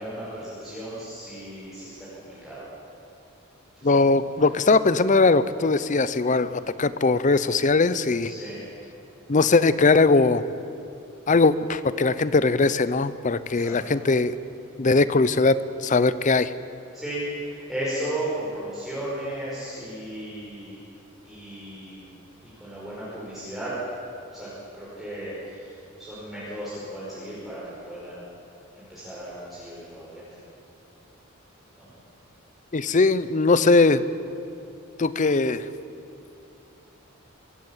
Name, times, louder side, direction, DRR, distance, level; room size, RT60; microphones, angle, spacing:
voice 1, 0.0-2.7 3.8-4.0 4.5-4.6 6.6-6.7 8.3-8.6 13.5-13.7 16.9-20.8 21.2-22.1 22.4-23.7 24.3-27.6 27.9-28.2 28.7-30.3 31.7-31.9, right 1 dB, ahead, -10 dB, 5.4 m, -35 dB
voice 2, 3.8-8.3 9.3-10.4 11.3-14.3 14.8-15.6 15.8-16.5 32.7-34.0 35.0-35.7, left 3 dB, 35° left, 15 dB, 0.6 m, -20 dB
25.0 x 15.5 x 7.3 m, 2.7 s
head